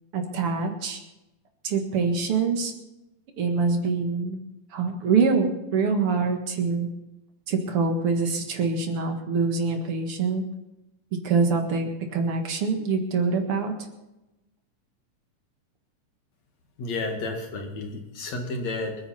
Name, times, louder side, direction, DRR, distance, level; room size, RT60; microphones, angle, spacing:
voice 1, 0.1-1.0 1.6-2.7 3.4-4.4 4.7-6.9 7.5-10.4 11.2-13.7, right 4 dB, 50° right, 4 dB, 2.3 m, -25 dB
voice 2, 16.8-19.0, left 2 dB, 55° left, 2 dB, 3.0 m, -31 dB
27.0 x 9.9 x 4.3 m, 0.97 s
omnidirectional pair, 3.9 m